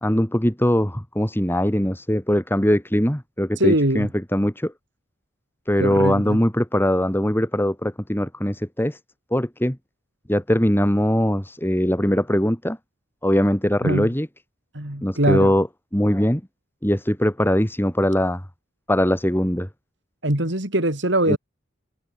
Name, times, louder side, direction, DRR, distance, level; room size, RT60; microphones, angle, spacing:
voice 1, 0.0-4.7 5.7-9.0 9.3-9.8 10.3-12.8 13.2-14.3 15.0-15.7 15.9-16.4 16.8-18.4 18.9-19.7 21.3-21.4, equal, 10° left, 3.2 m, -21 dB
voice 2, 3.6-4.1 5.8-6.4 13.8-14.1 14.7-15.5 20.2-21.4, right 1 dB, 65° right, 4.1 m, -22 dB
head